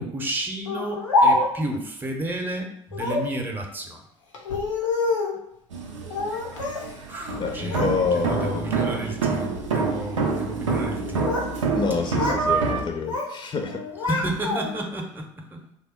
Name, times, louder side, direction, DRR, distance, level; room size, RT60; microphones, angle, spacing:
voice 1, 0.0-4.0 7.1-11.4 14.1-15.7, right 1 dB, 10° right, 1 dB, 0.8 m, -32 dB
Speech, 0.7-1.8 2.9-3.4 4.3-5.4 6.1-6.9 7.2-7.9 8.3-8.7 9.4-9.7 10.8-11.5 11.8-12.5 12.8-13.3 13.7-14.9, left 2 dB, 85° left, 0.7 m, -26 dB
sound 1, 5.7-12.8, right 4 dB, 85° right, 0.6 m, -27 dB
voice 2, 7.4-8.7 11.8-13.8, left 5 dB, 30° left, 3 dB, 0.6 m, -27 dB
3.4 x 2.0 x 4.2 m, 0.76 s
figure-of-eight pair, 60°, 16 cm